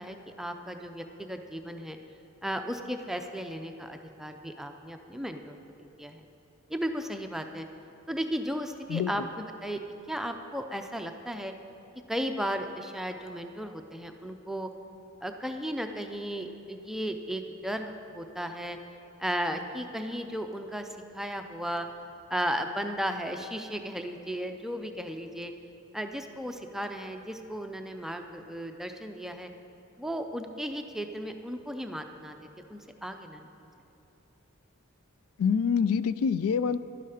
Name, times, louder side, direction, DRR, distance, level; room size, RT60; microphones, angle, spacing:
voice 1, 0.0-2.0 2.4-6.2 6.7-7.7 8.1-9.8 10.1-11.5 12.1-14.7 15.2-18.8 19.2-21.9 22.3-25.5 25.9-29.5 30.0-33.7, equal, ahead, 5 dB, 0.5 m, -35 dB
voice 2, 8.9-9.3 35.4-36.8, left 6 dB, 90° left, 15 dB, 0.3 m, -26 dB
11.0 x 10.0 x 4.9 m, 2.9 s
head